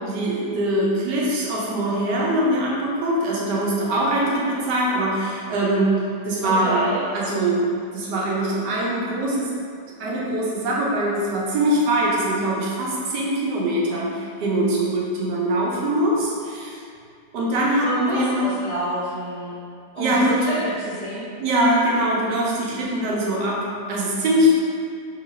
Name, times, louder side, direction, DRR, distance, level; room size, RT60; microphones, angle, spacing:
voice 1, 0.0-6.9 7.1-7.7 7.9-9.5 10.0-16.8 17.3-18.5 20.0-20.5 21.4-24.5, right 1 dB, 80° right, -4 dB, 1.3 m, -22 dB
voice 2, 6.4-7.0 17.8-19.5 19.9-21.3, right 1 dB, 65° right, -12 dB, 0.3 m, -28 dB
3.0 x 2.9 x 4.0 m, 2.3 s
omnidirectional pair, 1.8 m